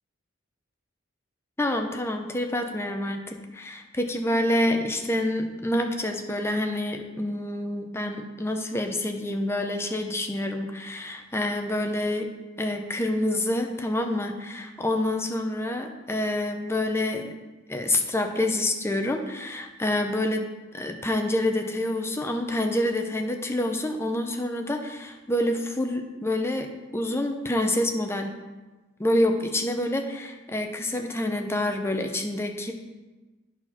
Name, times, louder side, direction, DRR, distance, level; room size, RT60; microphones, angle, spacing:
voice 1, 1.6-12.3 12.6-17.3 17.7-20.4 20.7-28.3 29.0-32.7, left 1 dB, 10° left, 4 dB, 0.7 m, -27 dB
9.3 x 4.2 x 5.9 m, 1.2 s
head